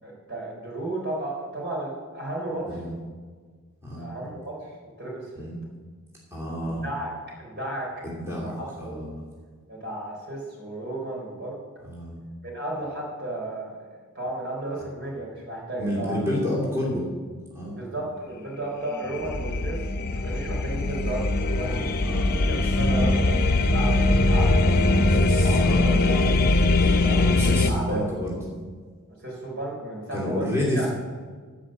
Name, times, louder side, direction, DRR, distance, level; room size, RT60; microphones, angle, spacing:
voice 1, 0.0-2.8 4.0-4.7 5.0-5.4 6.6-7.9 8.3-9.0 9.7-11.6 12.4-13.8 14.1-16.2 17.7-19.8 20.1-22.0 22.5-25.1 25.4-26.4 26.9-28.1 29.2-30.9, right 1 dB, 50° right, -2 dB, 3.9 m, -34 dB
voice 2, 6.3-6.9 8.0-9.2 11.8-12.2 15.8-17.0 17.5-17.8 22.0-22.6 23.0-23.1 24.7-26.0 27.1-28.4 30.1-30.9, equal, 10° right, -5 dB, 2.8 m, -30 dB
sound 1, 18.9-27.7, left 2 dB, 45° left, 0.7 m, -21 dB
15.0 x 5.1 x 7.4 m, 1.5 s
head